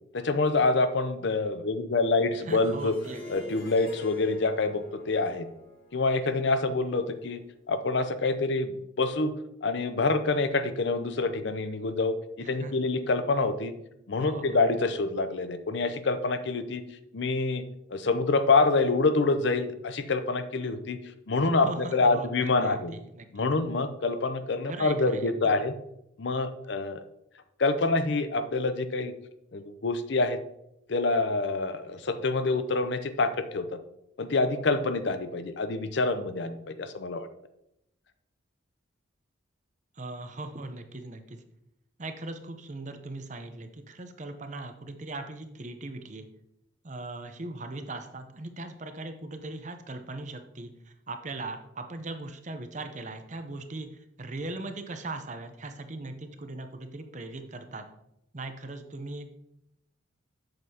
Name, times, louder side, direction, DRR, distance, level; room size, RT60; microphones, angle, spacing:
voice 1, 0.1-2.9 3.3-5.5 5.9-7.4 7.7-9.3 9.6-13.7 14.1-16.8 17.1-17.6 17.9-21.0 21.3-21.7 21.9-22.9 23.3-25.8 26.2-27.0 27.6-29.1 29.5-30.4 30.9-33.6 34.2-37.3, left 3 dB, 60° left, 10 dB, 0.5 m, -26 dB
voice 2, 2.3-3.4 12.4-12.9 14.2-14.6 21.5-23.5 24.6-25.5 39.9-41.4 42.0-46.3 46.8-57.9 58.3-59.3, right 2 dB, 35° right, 7 dB, 0.7 m, -39 dB
Harp, 2.5-7.4, left 2 dB, 30° left, 1.5 m, -47 dB
7.8 x 7.4 x 2.8 m, 0.80 s
head